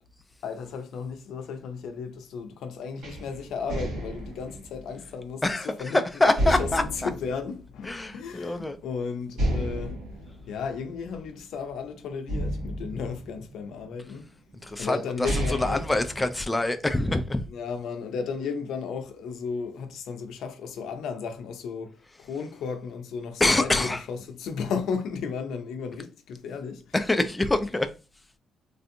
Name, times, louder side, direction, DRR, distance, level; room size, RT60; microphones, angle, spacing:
voice 1, 0.4-10.0 10.5-14.3 14.8-15.8 17.5-21.9 22.2-26.9, left 5 dB, 80° left, 0.6 m, -34 dB
sound 1, 3.0-5.8 6.4-8.3 8.7-8.8 9.3-11.7 12.3-13.9 14.6-14.7 15.1-16.9, right 1 dB, 85° right, 1.6 m, -32 dB
voice 2, 5.4-7.1 7.8-8.8 14.6-17.5 23.4-24.0 26.9-27.9, left 2 dB, 15° left, 0.4 m, -25 dB
3.3 x 2.6 x 2.6 m
cardioid pair, 90°, 0 cm